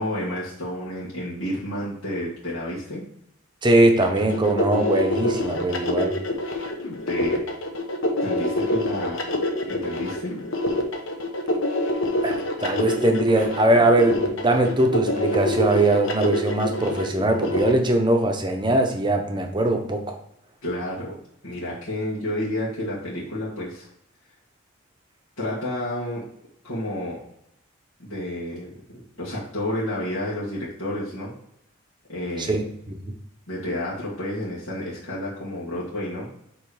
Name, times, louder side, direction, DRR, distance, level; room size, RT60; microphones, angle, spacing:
voice 1, 0.0-3.0 6.5-6.7 7.1-7.4 8.2-9.2 9.7-10.3 20.6-21.1 21.4-23.9 25.4-26.3 26.6-27.2 28.0-31.3 32.1-32.6 33.5-36.3, left 1 dB, 80° left, -8 dB, 1.8 m, -30 dB
voice 2, 3.6-6.1 12.2-20.2 32.4-33.1, right 1 dB, 20° right, 4 dB, 0.7 m, -21 dB
sound 1, 4.0-17.7, left 1 dB, 60° left, 1.0 m, -26 dB
7.6 x 3.1 x 4.8 m, 0.77 s
head